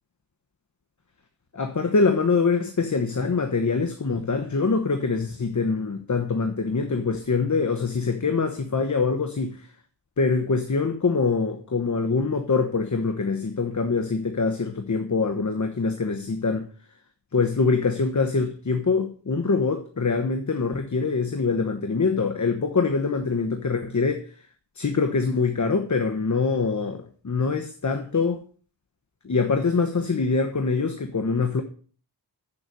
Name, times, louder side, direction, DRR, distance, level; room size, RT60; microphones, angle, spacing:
voice 1, 1.5-9.7 10.2-16.7 17.3-24.4 24.7-28.4 29.2-31.6, left 4 dB, 40° left, 1.1 m, -24 dB
7.8 x 7.0 x 6.7 m
wide cardioid pair, 65°, 43 cm